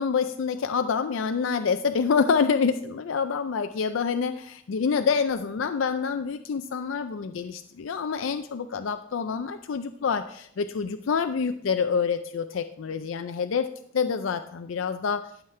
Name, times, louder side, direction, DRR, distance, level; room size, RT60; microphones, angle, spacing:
voice 1, 0.0-15.3, left 6 dB, 80° left, 9 dB, 0.4 m, -27 dB
13.0 x 7.2 x 3.3 m, 0.70 s
head